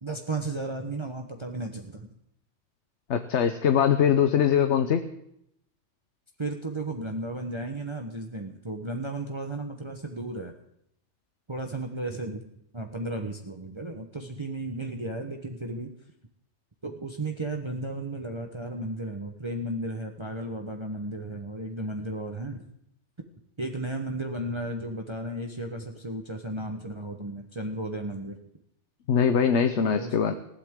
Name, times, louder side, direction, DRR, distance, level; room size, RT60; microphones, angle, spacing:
voice 1, 0.0-2.1 6.4-10.5 11.5-12.5 12.7-15.9 16.8-22.6 23.6-28.4 29.9-30.1, right 2 dB, 25° right, 3 dB, 1.1 m, -34 dB
voice 2, 3.1-5.0 29.1-30.3, left 8 dB, 80° left, 8 dB, 1.1 m, -22 dB
20.0 x 15.5 x 3.7 m, 0.75 s
omnidirectional pair, 1.2 m